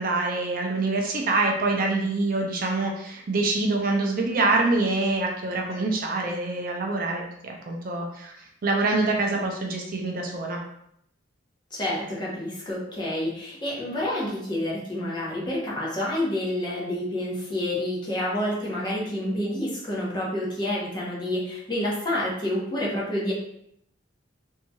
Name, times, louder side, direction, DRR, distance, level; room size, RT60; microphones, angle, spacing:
voice 1, 0.0-8.3 8.6-10.6, right 3 dB, 50° right, 1 dB, 0.4 m, -25 dB
voice 2, 11.7-23.3, left 1 dB, 25° left, -5 dB, 0.7 m, -28 dB
2.9 x 2.6 x 2.2 m, 0.74 s
head